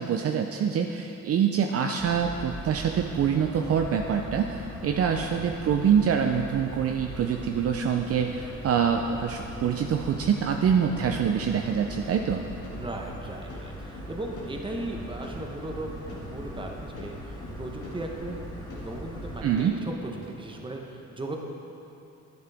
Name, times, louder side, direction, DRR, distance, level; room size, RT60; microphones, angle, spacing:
voice 1, 0.0-12.4 19.4-19.7, right 7 dB, 50° right, 4 dB, 0.6 m, -25 dB
sound 1, 2.0-19.4, equal, 15° left, 1.9 m, -41 dB
sound 2, 8.9-20.7, left 1 dB, 85° left, 2.0 m, -46 dB
voice 2, 12.7-18.4 18.7-19.9 20.3-21.4, right 2 dB, 15° right, 1 dB, 1.2 m, -37 dB
11.0 x 9.6 x 3.5 m, 2.8 s
cardioid pair, 90°, 30 cm